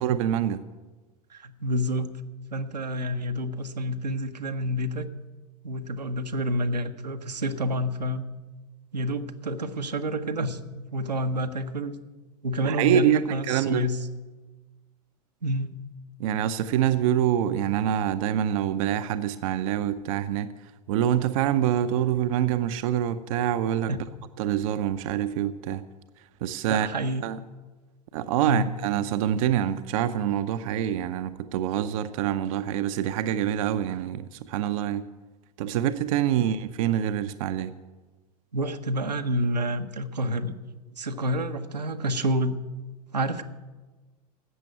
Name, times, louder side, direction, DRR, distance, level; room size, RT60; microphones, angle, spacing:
voice 1, 0.0-0.6 12.6-13.9 16.2-24.0 24.4-25.8 26.2-26.9 27.2-27.4 28.1-35.0 35.6-37.7, right 10 dB, 55° right, 10 dB, 0.6 m, -26 dB
voice 2, 1.3-2.1 2.5-5.1 5.6-8.3 8.9-11.9 12.4-14.0 15.4-15.7 23.9-24.0 26.6-27.2 28.4-28.7 36.4-36.5 38.5-40.6 41.0-42.6 43.1-43.4, equal, 90° right, 5 dB, 1.0 m, -28 dB
12.5 x 8.2 x 9.2 m, 1.2 s
figure-of-eight pair, 90°, 20 cm